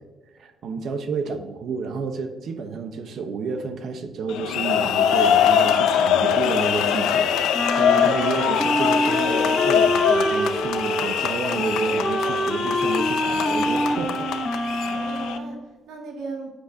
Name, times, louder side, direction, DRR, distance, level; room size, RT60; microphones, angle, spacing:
voice 1, 0.4-14.3, right 4 dB, 65° right, 7 dB, 0.9 m, -30 dB
sound 1, 4.3-15.4, left 8 dB, 90° left, 0.6 m, -23 dB
Wind instrument woodwind instrument, 7.5-15.6, equal, 5° left, 1.0 m, -25 dB
voice 2, 14.9-16.5, right 3 dB, 90° right, 0 dB, 2.0 m, -37 dB
9.6 x 6.5 x 2.7 m, 1.2 s
cardioid pair, 90°, 0 cm